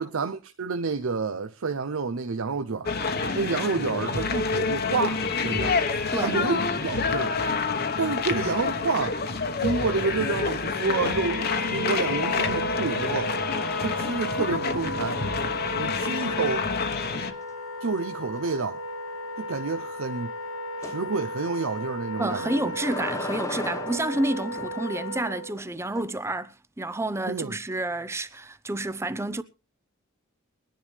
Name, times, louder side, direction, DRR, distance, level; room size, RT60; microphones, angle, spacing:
voice 1, 0.0-3.0 3.3-5.8 6.2-7.4 8.0-9.2 9.6-13.3 13.8-15.2 15.8-16.7 17.8-18.8 19.4-20.3 20.8-22.7 27.3-27.6, right 4 dB, 75° right, 0.7 m, -29 dB
sound 1, 2.9-17.3, left 4 dB, 50° left, 1.2 m, -28 dB
sound 2, 6.9-7.0 7.3-7.7 10.0-10.5 13.7-14.1 14.6-17.0 17.4-17.5 17.9-18.0 18.4-18.5 20.8-21.0 22.3-24.8 25.6-26.0, left 2 dB, 15° left, 1.0 m, -40 dB
Wind instrument woodwind instrument, 10.7-25.6, equal, 85° left, 3.4 m, -35 dB
voice 2, 22.2-29.4, right 1 dB, 15° right, 0.6 m, -29 dB
22.0 x 10.5 x 3.3 m
head